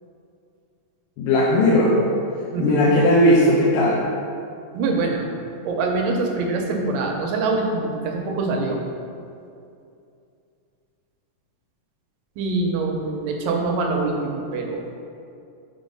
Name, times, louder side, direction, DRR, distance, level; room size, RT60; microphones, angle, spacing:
voice 1, 1.2-2.1 2.6-4.0, left 1 dB, 85° left, -5 dB, 2.4 m, -17 dB
voice 2, 2.5-3.0 4.7-5.3 5.7-8.8 12.4-14.8, right 3 dB, 80° right, 1 dB, 2.4 m, -24 dB
6.3 x 3.8 x 5.3 m, 2.5 s
omnidirectional pair, 3.9 m